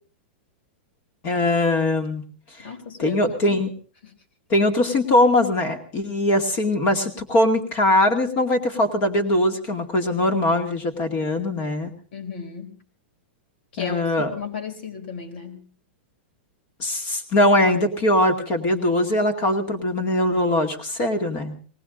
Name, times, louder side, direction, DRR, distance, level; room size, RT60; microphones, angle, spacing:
voice 1, 1.2-2.2 3.0-3.7 4.5-11.9 13.8-14.3 16.8-21.5, left 1 dB, 30° left, 6 dB, 2.2 m, -21 dB
voice 2, 2.6-3.2 3.5-3.6 4.0-4.1 12.1-12.8 13.7-15.7, left 6 dB, 60° left, 6 dB, 3.6 m, -35 dB
19.5 x 18.5 x 3.8 m, 0.38 s
supercardioid pair, 170°, 6 cm